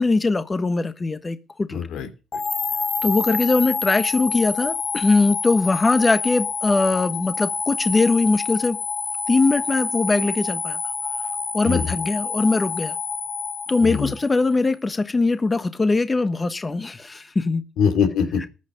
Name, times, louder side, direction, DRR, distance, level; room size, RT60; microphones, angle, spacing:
voice 1, 0.0-1.8 3.0-8.8 9.3-10.8 11.5-12.9 13.7-17.6, left 3 dB, 25° left, 11 dB, 1.2 m, -21 dB
voice 2, 1.7-2.4 11.6-11.9 13.8-14.1 17.8-18.5, left 6 dB, 85° left, 8 dB, 2.9 m, -23 dB
sound 1, 2.3-14.5, left 4 dB, 40° left, 1.8 m, -28 dB
14.0 x 9.2 x 5.2 m, 0.31 s
cardioid pair, 90°, 0 cm